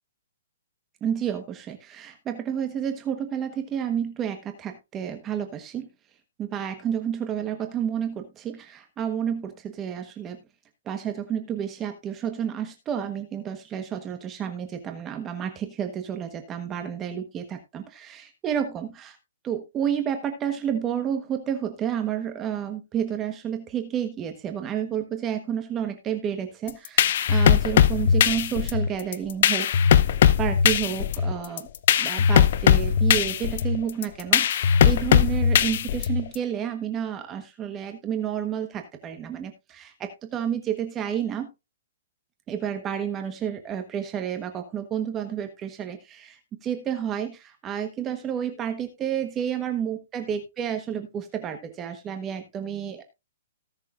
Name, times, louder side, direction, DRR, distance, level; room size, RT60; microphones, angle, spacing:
voice 1, 1.0-5.9 6.4-10.4 10.9-19.2 19.4-29.7 30.4-31.7 32.0-41.5 42.5-53.0, right 9 dB, 20° right, 6 dB, 1.3 m, -30 dB
sound 1, 26.7-36.3, left 8 dB, 60° left, 0.7 m, -20 dB
18.5 x 6.6 x 2.5 m, 0.25 s
hypercardioid pair, 145°, 0 cm